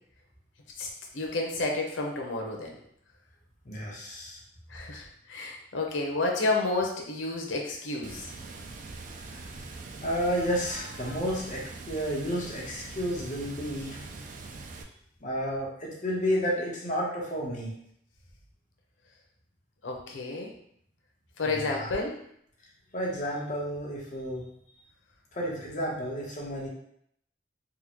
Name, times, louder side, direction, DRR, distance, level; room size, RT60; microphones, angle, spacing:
voice 1, 1.1-2.7 4.7-8.3 19.8-20.5 21.4-22.2, left 2 dB, 90° left, 1 dB, 0.7 m, -30 dB
voice 2, 3.6-4.4 9.4-9.5 10.0-14.0 15.2-17.7 21.4-21.9 22.9-24.4 25.3-26.7, equal, 40° left, -4 dB, 0.9 m, -31 dB
Water, 8.0-14.8, right 3 dB, 45° right, 0.3 m, -43 dB
3.7 x 2.2 x 3.0 m, 0.70 s
head